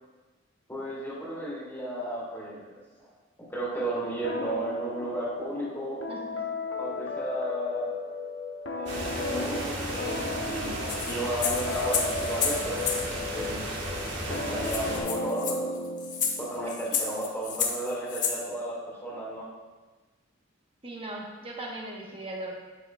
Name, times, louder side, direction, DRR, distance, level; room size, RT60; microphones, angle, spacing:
voice 1, 0.7-3.1 3.4-6.0 6.8-7.9 8.7-12.8 13.3-13.6 14.3-15.7 16.4-19.5, right 1 dB, 10° left, -7 dB, 2.5 m, -34 dB
sound 1, 4.2-16.6, left 3 dB, 85° left, 0.8 m, -35 dB
voice 2, 6.1-6.5 20.8-22.5, right 1 dB, 30° right, -2 dB, 1.1 m, -38 dB
sound 2, 8.9-15.0, right 1 dB, 65° right, 1.3 m, -34 dB
sound 3, 10.9-13.1 14.0-14.1 14.3-14.4 14.6-18.4, left 6 dB, 40° left, 0.8 m, -31 dB
8.4 x 7.8 x 2.3 m, 1.2 s
head